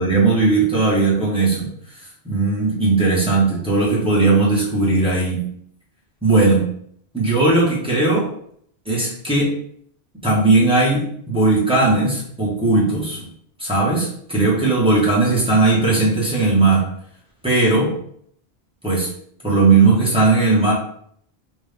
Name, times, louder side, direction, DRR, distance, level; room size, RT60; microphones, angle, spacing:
voice 1, 0.0-1.7 2.2-5.5 6.2-6.7 7.1-8.3 8.8-9.6 10.2-13.2 13.6-16.9 17.4-18.0 18.8-19.1 19.4-20.7, right 3 dB, 5° right, -7 dB, 1.2 m, -17 dB
3.8 x 2.6 x 3.4 m, 0.66 s
omnidirectional pair, 1.1 m